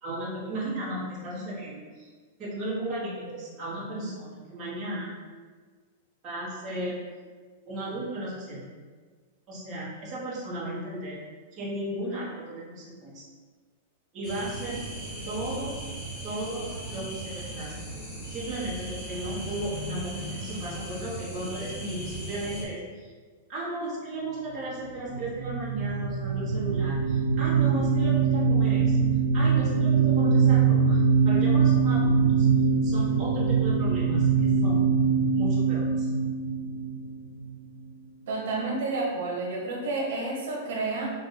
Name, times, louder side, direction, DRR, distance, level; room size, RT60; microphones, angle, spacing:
voice 1, 0.0-2.1 2.4-5.1 6.2-7.0 7.7-8.6 9.5-11.2 11.5-13.2 14.1-14.8 15.2-15.8 16.2-17.7 18.3-23.1 23.5-29.1 29.3-32.5 32.8-34.9 35.3-36.1, right 1 dB, 20° right, -9 dB, 1.1 m, -35 dB
sound 1, 14.2-22.6, right 1 dB, 15° left, 0.9 m, -37 dB
sound 2, 25.1-37.6, right 5 dB, 85° right, 0.3 m, -23 dB
voice 2, 38.3-41.1, right 3 dB, 70° right, -2 dB, 1.0 m, -30 dB
4.0 x 2.5 x 3.9 m, 1.5 s
supercardioid pair, 180°, 0 cm